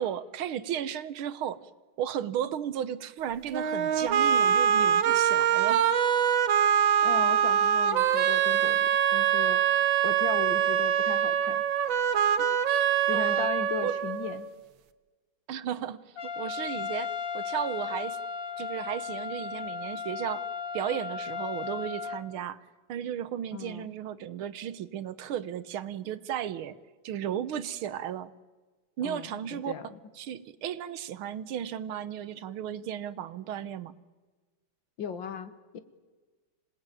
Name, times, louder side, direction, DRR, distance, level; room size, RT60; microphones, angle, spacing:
voice 1, 0.0-1.6 2.0-5.9 13.1-13.5 13.8-14.0 15.5-16.0 16.4-18.2 18.6-20.5 20.7-22.6 22.9-28.3 29.0-29.7 30.2-33.9, right 10 dB, 85° right, 15 dB, 1.8 m, -34 dB
sound 1, 3.5-14.5, right 9 dB, 70° right, 1.8 m, -24 dB
voice 2, 7.0-9.6 10.0-11.9 13.1-14.5 23.5-23.9 29.0-29.9 35.0-35.8, left 7 dB, 65° left, 12 dB, 2.1 m, -37 dB
Trumpet, 16.2-22.2, left 6 dB, 45° left, 1.7 m, -35 dB
27.0 x 19.0 x 9.2 m, 1.3 s
omnidirectional pair, 2.2 m